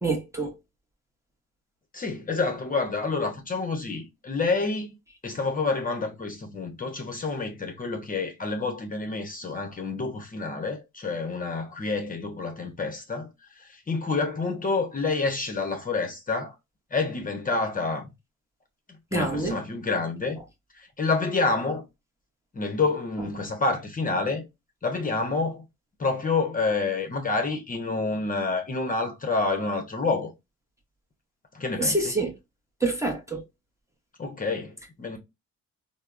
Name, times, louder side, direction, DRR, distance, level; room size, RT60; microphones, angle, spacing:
voice 1, 0.0-0.5 19.1-19.5 31.8-32.3 32.8-33.4, right 2 dB, 10° right, 0.7 m, -26 dB
voice 2, 1.9-4.9 5.2-16.6 16.9-18.1 18.9-20.4 20.7-21.8 22.5-24.4 24.8-25.6 26.0-30.3 31.5-32.2 34.2-35.2, left 3 dB, 30° left, 0.7 m, -28 dB
3.3 x 2.0 x 2.4 m
cardioid pair, 90°, 30 cm